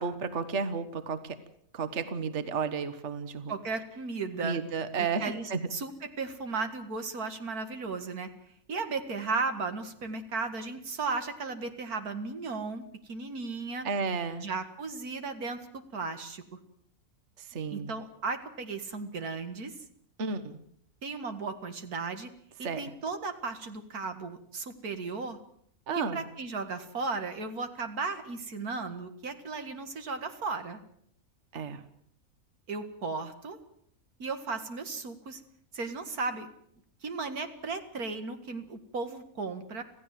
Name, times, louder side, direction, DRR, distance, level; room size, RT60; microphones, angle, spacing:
voice 1, 0.0-1.4 1.7-3.5 4.4-5.6 13.8-14.4 17.4-17.9 20.2-20.6 22.6-22.9 25.9-26.2 31.5-31.8, right 5 dB, 50° right, 10 dB, 1.6 m, -32 dB
voice 2, 3.5-4.6 5.2-8.3 8.7-13.9 14.4-16.4 17.7-19.7 21.0-22.3 22.6-25.4 26.1-30.8 32.7-33.6 34.2-35.4 35.7-36.5 37.0-39.8, right 4 dB, 85° right, 7 dB, 2.3 m, -35 dB
26.5 x 15.5 x 7.6 m, 0.69 s
omnidirectional pair, 1.5 m